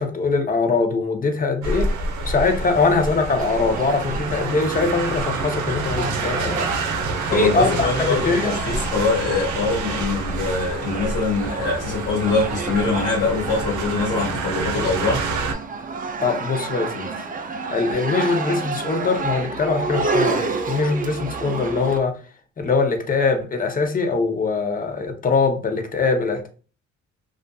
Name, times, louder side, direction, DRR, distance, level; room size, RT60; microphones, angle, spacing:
voice 1, 0.0-1.9 2.2-6.7 7.2-8.6 16.2-17.1 17.7-22.2 22.6-26.5, left 4 dB, 30° left, 0.6 m, -22 dB
sound 1, 1.6-15.5, right 3 dB, 75° right, 0.6 m, -28 dB
sound 2, 3.4-22.0, right 4 dB, 30° right, 0.4 m, -30 dB
voice 2, 7.3-15.3, left 3 dB, 85° left, 1.1 m, -23 dB
2.5 x 2.5 x 2.2 m
cardioid pair, 90°, 30 cm